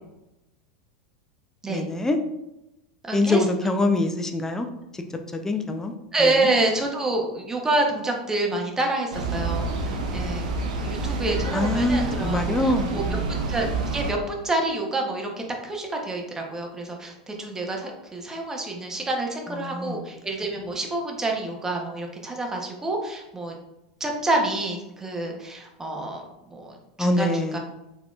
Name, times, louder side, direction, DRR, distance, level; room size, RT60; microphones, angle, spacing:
voice 1, 1.7-2.2 3.1-4.7 4.9-5.0 5.3-5.9 6.2-6.5 11.5-13.2 19.5-20.0 27.0-27.6, left 2 dB, 10° left, 5 dB, 0.4 m, -24 dB
voice 2, 3.0-3.4 6.1-10.5 10.8-13.0 13.3-23.6 24.0-26.2 26.5-27.6, right 2 dB, 15° right, 1 dB, 0.8 m, -28 dB
sound 1, 9.1-14.1, right 3 dB, 80° right, 0.7 m, -28 dB
4.0 x 2.9 x 2.4 m, 0.92 s
hypercardioid pair, 100°, 4 cm